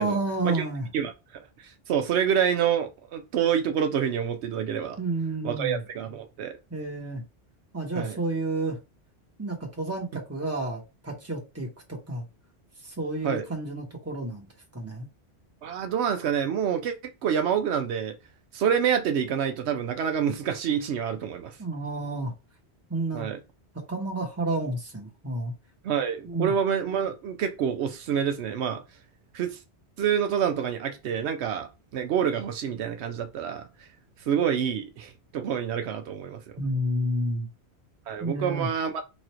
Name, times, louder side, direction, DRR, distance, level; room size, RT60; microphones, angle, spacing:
voice 1, 0.0-0.9 5.0-5.8 6.7-7.2 7.7-8.8 9.4-12.2 12.8-14.5 14.7-15.1 21.6-22.3 22.9-23.3 23.9-25.5 26.2-26.5 36.6-37.5 38.2-38.7, right 2 dB, 15° right, 1.0 m, -30 dB
voice 2, 0.9-1.4 1.9-5.0 5.4-6.5 7.9-8.2 13.2-13.5 15.6-16.9 17.2-18.1 18.5-21.6 23.1-23.4 25.8-28.8 29.3-29.6 30.0-33.6 34.3-36.4 38.1-39.0, right 8 dB, 80° right, 0.9 m, -27 dB
3.1 x 2.5 x 4.3 m
omnidirectional pair, 1.1 m